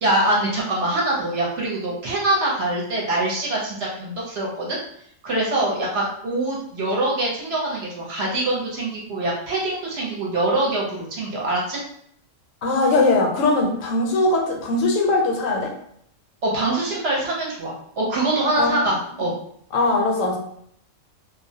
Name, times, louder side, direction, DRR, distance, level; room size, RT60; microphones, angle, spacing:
voice 1, 0.0-4.8 5.2-11.8 16.4-19.3, right 2 dB, 60° right, -3 dB, 0.8 m, -24 dB
voice 2, 12.6-15.7 18.5-18.8 19.7-20.4, left 2 dB, 80° left, 0 dB, 0.9 m, -20 dB
2.3 x 2.0 x 2.6 m, 0.68 s
omnidirectional pair, 1.3 m